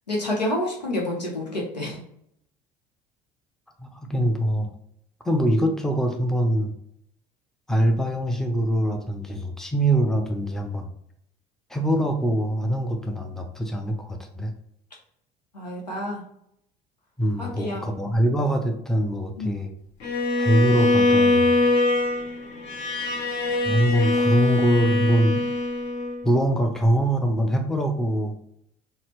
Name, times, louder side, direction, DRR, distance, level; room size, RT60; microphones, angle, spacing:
voice 1, 0.1-2.0 15.5-16.2 17.4-17.9 19.4-19.6, left 1 dB, 85° left, -1 dB, 0.7 m, -29 dB
voice 2, 3.8-4.7 5.3-6.7 7.7-10.9 11.7-14.5 17.2-19.7 20.4-21.5 23.6-25.4 26.2-28.3, right 1 dB, ahead, 4 dB, 0.5 m, -23 dB
Bowed string instrument, 20.0-26.3, left 2 dB, 50° left, 0.8 m, -22 dB
4.0 x 2.0 x 2.9 m, 0.73 s
figure-of-eight pair, 60°, 21 cm